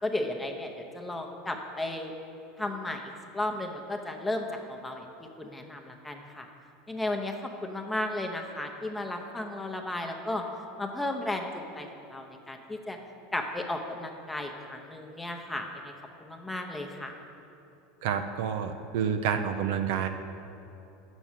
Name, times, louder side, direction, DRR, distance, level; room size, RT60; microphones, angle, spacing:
voice 1, 0.0-2.1 2.6-3.0 3.3-5.1 5.4-6.5 6.9-10.4 10.8-13.0 13.3-15.9 16.2-17.1, left 1 dB, 10° left, 3 dB, 0.7 m, -34 dB
voice 2, 18.0-20.1, right 7 dB, 75° right, 7 dB, 0.5 m, -29 dB
6.8 x 6.2 x 7.3 m, 2.8 s
supercardioid pair, 115°, 0 cm